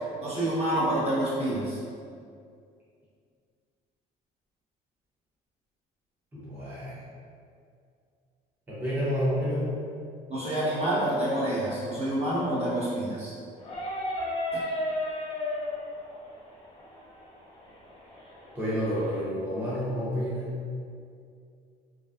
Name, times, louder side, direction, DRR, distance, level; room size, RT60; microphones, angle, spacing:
voice 1, 0.2-1.8 10.3-13.3, right 1 dB, 40° right, -8 dB, 0.8 m, -27 dB
voice 2, 6.3-7.0 8.7-9.8 18.5-20.6, equal, 10° right, -10 dB, 0.6 m, -29 dB
sound 1, 13.6-19.2, left 1 dB, 35° left, 0.6 m, -35 dB
2.5 x 2.2 x 2.3 m, 2.3 s
cardioid pair, 110°, 17 cm